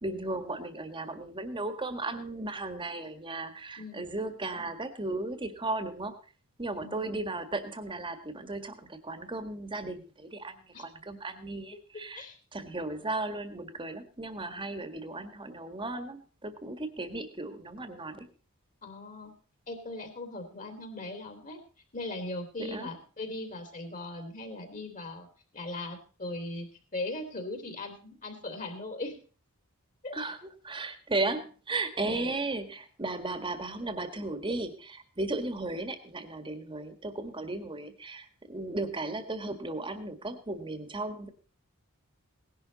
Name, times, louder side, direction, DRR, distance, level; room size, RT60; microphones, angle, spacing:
voice 1, 0.0-6.2 6.6-12.3 12.5-18.3 22.7-22.9 30.1-30.4 30.6-41.3, right 2 dB, 20° right, 9 dB, 1.7 m, -35 dB
voice 2, 18.8-19.3 19.7-21.6 21.9-25.3 25.5-26.7 26.9-29.1 30.0-30.2 32.0-32.3, left 2 dB, 35° left, 6 dB, 3.1 m, -39 dB
18.0 x 11.5 x 4.1 m, 0.38 s
head